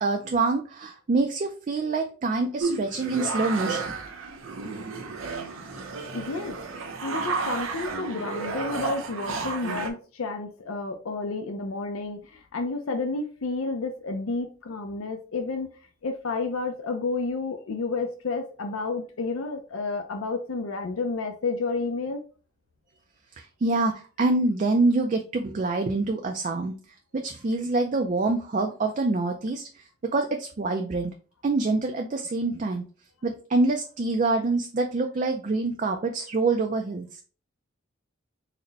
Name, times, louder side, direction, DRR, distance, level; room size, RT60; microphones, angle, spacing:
voice 1, 0.0-3.8 23.4-26.7 27.1-29.7 30.1-31.1 31.4-32.8 33.2-37.2, right 3 dB, 40° right, 4 dB, 0.3 m, -26 dB
sound 1, 2.6-9.9, right 4 dB, 85° right, 0.6 m, -32 dB
voice 2, 6.1-6.6 7.0-15.7 16.0-22.2, left 3 dB, 85° left, 5 dB, 0.5 m, -31 dB
4.1 x 2.1 x 3.9 m, 0.38 s
head